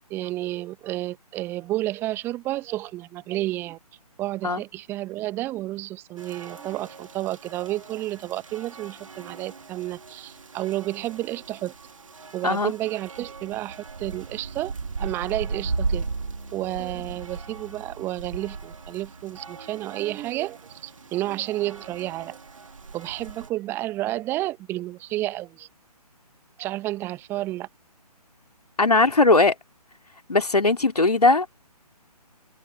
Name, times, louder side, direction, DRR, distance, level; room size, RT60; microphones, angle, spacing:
voice 1, 0.1-3.8 4.2-11.7 12.3-14.7 15.0-16.0 16.5-22.4 22.9-25.7 26.6-27.7, right 16 dB, 10° right, 1.4 m, -31 dB
sound 1, 6.2-23.5, right 5 dB, 55° right, 2.1 m, -39 dB
Bowed string instrument, 15.6-20.2, right 2 dB, 75° right, 2.1 m, -36 dB
voice 2, 28.8-29.5 30.3-31.5, left 3 dB, 70° left, 2.9 m, -19 dB
figure-of-eight pair, 145°, 21 cm